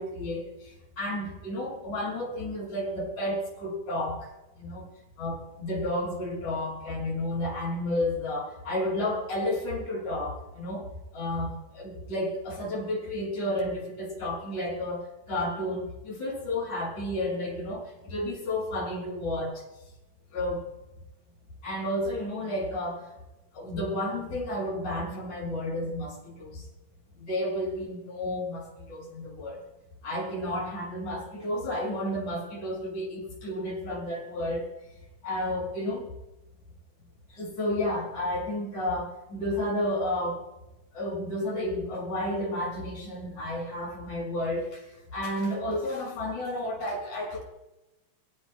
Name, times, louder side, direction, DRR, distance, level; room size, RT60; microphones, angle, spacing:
voice 1, 0.0-4.3 4.6-4.9 5.2-10.9 11.1-19.6 20.3-20.6 21.6-23.1 23.5-26.7 27.2-29.6 30.0-34.7 35.2-36.1 37.3-40.4 40.9-47.4, left 1 dB, 55° left, -3 dB, 7.5 m, -32 dB
25.0 x 20.0 x 2.2 m, 0.99 s
omnidirectional pair, 4.0 m